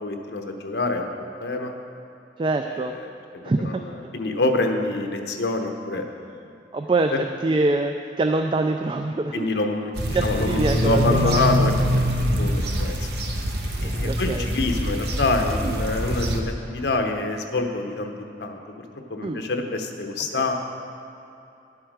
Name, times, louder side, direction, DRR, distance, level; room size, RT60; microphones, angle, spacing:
voice 1, 0.0-1.7 2.7-6.4 7.1-7.2 9.3-12.0 12.3-12.5 12.8-13.1 13.8-18.8 19.1-20.5, left 2 dB, 75° left, 4 dB, 0.9 m, -26 dB
voice 2, 2.4-2.9 3.4-3.8 6.7-7.1 7.4-9.5 10.1-11.4 14.0-14.5 15.6-15.8 19.2-19.4 20.3-20.4, right 2 dB, 30° right, 5 dB, 0.3 m, -24 dB
sound 1, 9.9-16.4, equal, 70° right, 1.0 m, -24 dB
12.0 x 7.8 x 4.8 m, 2.8 s
head